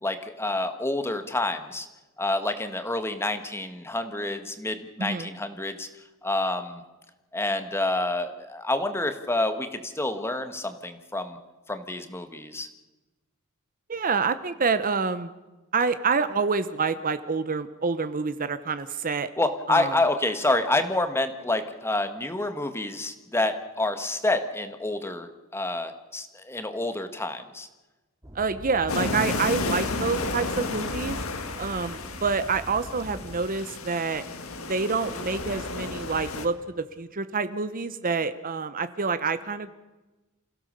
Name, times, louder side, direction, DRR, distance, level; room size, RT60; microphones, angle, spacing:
voice 1, 0.0-1.9 2.2-5.9 6.2-6.8 7.3-11.4 11.7-12.7 19.4-27.7, left 2 dB, 10° left, 8 dB, 1.6 m, -28 dB
voice 2, 5.0-5.3 13.9-15.3 15.7-19.3 19.7-19.9 28.3-31.2 31.6-34.2 34.6-39.7, right 4 dB, 40° right, 12 dB, 0.9 m, -27 dB
sound 1, 28.2-33.5, equal, 15° right, 2.2 m, -44 dB
sound 2, 28.9-36.5, left 3 dB, 70° left, 1.9 m, -32 dB
28.0 x 16.0 x 6.8 m, 1.1 s
head